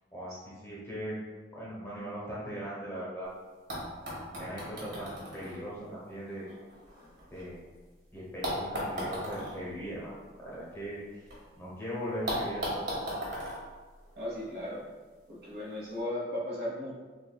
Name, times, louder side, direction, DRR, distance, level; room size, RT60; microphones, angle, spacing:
voice 1, 0.1-1.2 1.5-3.3 4.4-6.5 7.3-7.6 8.1-11.2 11.6-13.3, equal, 15° left, -7 dB, 1.0 m, -39 dB
sound 1, 3.2-3.3 3.7-7.8 8.4-11.4 11.7-11.8 12.3-14.7 15.6-15.7, equal, 80° right, 1.5 m, -38 dB
voice 2, 14.1-14.9 15.3-16.9, left 1 dB, 60° right, -6 dB, 1.4 m, -36 dB
6.7 x 2.6 x 2.3 m, 1.3 s
head